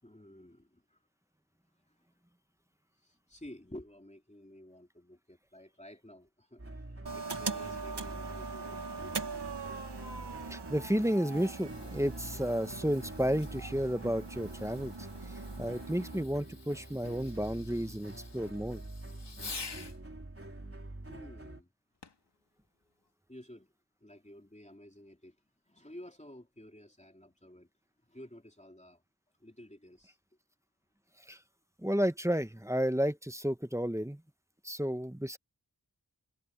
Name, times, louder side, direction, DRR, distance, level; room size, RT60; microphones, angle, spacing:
voice 1, 0.0-1.0 1.9-2.0 3.0-8.9 21.1-21.7 23.3-23.7 24.0-25.3 25.7-27.7 28.0-29.0 29.4-30.2, left 1 dB, 15° left, 3.4 m, -52 dB
sound 1, 6.6-21.6, right 2 dB, 35° right, 3.6 m, -46 dB
sound 2, 7.1-16.2, right 4 dB, 90° right, 1.9 m, -41 dB
voice 2, 10.5-14.9 15.6-18.8 31.3-31.4 31.8-34.2 34.6-35.4, equal, 5° right, 1.2 m, -32 dB
Fireworks, 10.8-20.0 22.0-22.3 23.0-23.1, left 4 dB, 90° left, 2.3 m, -50 dB
wide cardioid pair, 40°, 40 cm